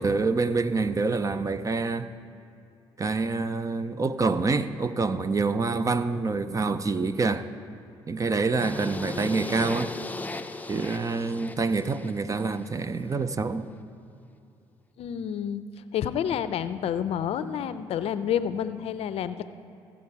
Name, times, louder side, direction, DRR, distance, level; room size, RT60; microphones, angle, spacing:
voice 1, 0.0-2.1 3.0-7.5 8.1-9.9 10.7-13.7, right 4 dB, 30° right, 12 dB, 0.6 m, -26 dB
sound 1, 8.6-12.7, left 2 dB, 15° left, 0.6 m, -36 dB
voice 2, 15.0-15.6 15.9-19.5, left 9 dB, 65° left, 13 dB, 0.5 m, -29 dB
15.0 x 7.3 x 4.6 m, 2.6 s
supercardioid pair, 55°, 11 cm